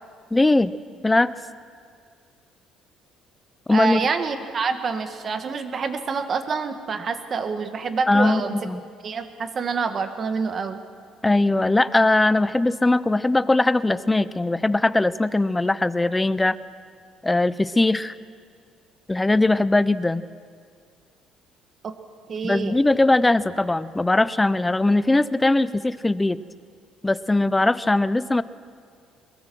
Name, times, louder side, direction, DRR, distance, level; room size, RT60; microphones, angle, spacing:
voice 1, 0.3-0.7 1.0-1.3 3.7-4.1 8.1-8.8 11.2-16.6 17.2-18.2 19.1-20.2 22.4-26.4 27.0-28.4, left 2 dB, 10° left, 16 dB, 0.6 m, -20 dB
voice 2, 3.7-8.6 9.0-10.8 21.8-21.9 22.3-22.8, right 5 dB, 35° right, 8 dB, 1.6 m, -27 dB
22.5 x 22.0 x 6.2 m, 2.2 s
cardioid pair, 130°, 0 cm